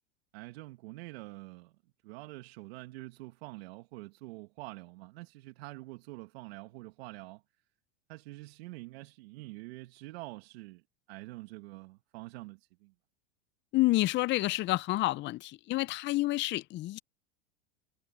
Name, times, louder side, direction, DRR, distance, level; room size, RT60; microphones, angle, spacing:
voice 1, 0.3-1.7 2.0-7.4 8.1-10.8 11.1-12.9, right 21 dB, 65° right, 2.0 m, -46 dB
voice 2, 13.7-17.0, left 18 dB, 35° left, 0.7 m, -29 dB
hypercardioid pair, 110°, 33 cm